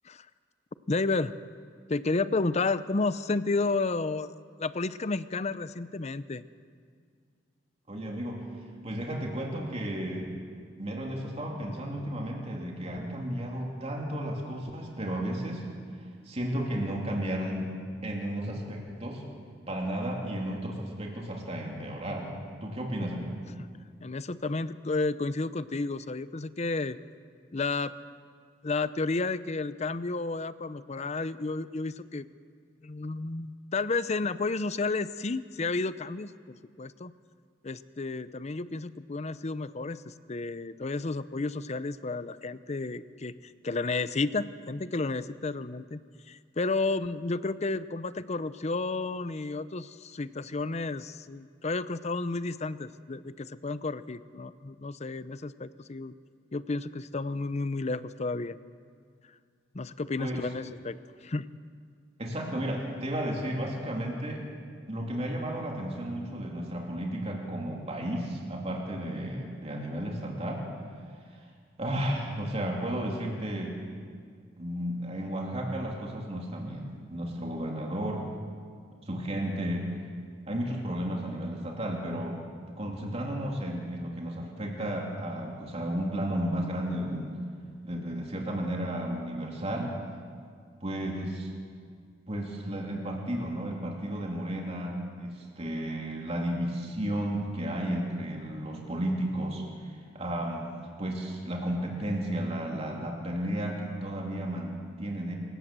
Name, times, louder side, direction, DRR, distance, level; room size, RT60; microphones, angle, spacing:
voice 1, 0.9-1.3 1.9-4.3 4.6-6.4 23.6-23.7 24.0-27.0 27.5-27.9 28.6-32.3 32.8-37.1 37.6-46.0 46.3-56.1 56.5-58.6 59.7-61.5, left 3 dB, 35° left, 15 dB, 0.6 m, -32 dB
voice 2, 7.9-8.4 8.8-10.3 10.8-15.7 16.3-17.7 18.0-19.2 19.7-22.3 22.6-23.4 60.2-60.4 62.2-64.4 64.9-70.7 71.8-73.8 74.6-78.2 79.1-79.9 80.5-82.4 82.6-87.4 87.8-90.0 90.8-91.5 92.2-100.7 101.0-105.4, right 1 dB, 35° right, -1 dB, 3.0 m, -33 dB
26.5 x 16.5 x 7.5 m, 2.1 s
head